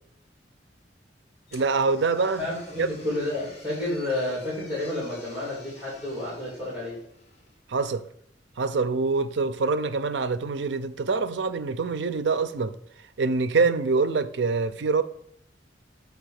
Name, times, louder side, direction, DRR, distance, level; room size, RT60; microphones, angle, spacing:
sound 1, 1.5-7.6, left 3 dB, 40° left, 1.9 m, -51 dB
voice 1, 1.5-2.4 2.8-2.9 7.7-8.0 8.6-12.7 13.2-15.0, right 4 dB, 80° right, 0.5 m, -25 dB
voice 2, 2.4-7.0, left 1 dB, 10° right, 3.1 m, -30 dB
8.0 x 3.5 x 6.4 m
head